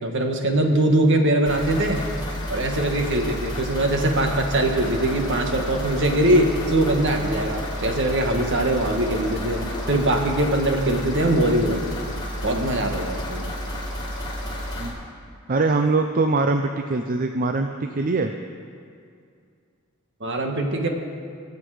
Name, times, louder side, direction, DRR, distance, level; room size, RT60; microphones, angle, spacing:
voice 1, 0.0-2.0 2.5-11.8 12.4-13.5 20.2-20.9, right 1 dB, 55° right, 3 dB, 1.6 m, -22 dB
sound 1, 1.4-14.9, equal, 20° left, 2.9 m, -31 dB
Subway metro underground, 4.9-10.4, equal, ahead, 3.7 m, -39 dB
voice 2, 15.5-18.3, right 3 dB, 40° right, 6 dB, 0.6 m, -22 dB
23.5 x 8.4 x 4.9 m, 2.3 s
head